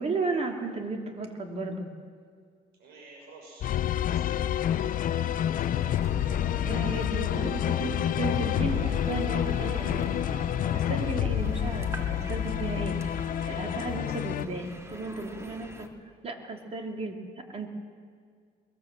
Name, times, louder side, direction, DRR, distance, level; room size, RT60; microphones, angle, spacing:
voice 1, 0.0-1.9 6.6-10.1 10.7-13.0 13.4-15.9 16.2-17.2 17.5-17.7, right 3 dB, 40° right, 2 dB, 3.3 m, -34 dB
voice 2, 2.8-4.4 4.7-5.8, right 2 dB, 75° right, -1 dB, 6.3 m, -51 dB
sound 1, 3.6-14.5, left 11 dB, 55° left, 0.7 m, -28 dB
sound 2, 4.6-15.9, right 1 dB, 15° right, 2.2 m, -43 dB
23.0 x 19.0 x 7.8 m, 2.1 s
cardioid pair, 110°, 17 cm